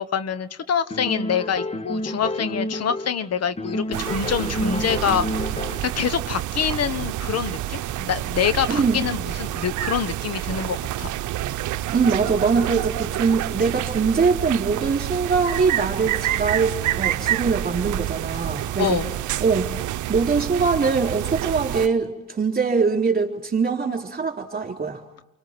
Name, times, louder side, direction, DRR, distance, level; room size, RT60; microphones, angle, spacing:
voice 1, 0.0-5.5 5.8-11.1 18.8-19.1, left 7 dB, 55° left, 13 dB, 1.4 m, -26 dB
sound 1, 0.9-3.2 3.6-6.0, left 1 dB, 20° left, 1.2 m, -29 dB
sound 2, 3.9-21.9, right 14 dB, 80° right, 0.8 m, -28 dB
voice 2, 8.7-9.0 11.9-19.0 19.4-19.7 20.1-25.0, right 5 dB, 30° right, 3 dB, 3.9 m, -22 dB
29.5 x 24.5 x 6.0 m, 0.97 s
cardioid pair, 90°, 30 cm